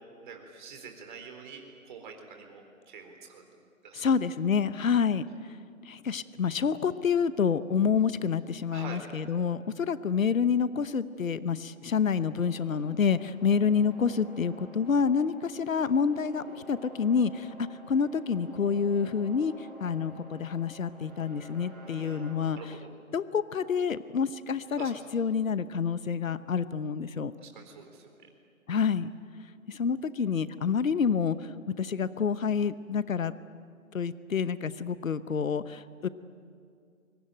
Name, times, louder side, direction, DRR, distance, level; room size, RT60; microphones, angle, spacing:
voice 1, 0.2-3.4 3.8-4.0 8.7-9.0 21.9-22.3 22.6-22.9 24.8-24.9 27.4-28.3, right 5 dB, 35° right, 3 dB, 4.0 m, -46 dB
voice 2, 3.9-5.6 5.8-22.6 23.1-27.3 28.7-29.1 29.7-33.3 33.9-36.1, left 6 dB, 65° left, 14 dB, 1.0 m, -28 dB
sound 1, 12.3-22.3, equal, ahead, 7.8 m, -50 dB
24.0 x 23.5 x 9.0 m, 2.4 s
figure-of-eight pair, 155°, 42 cm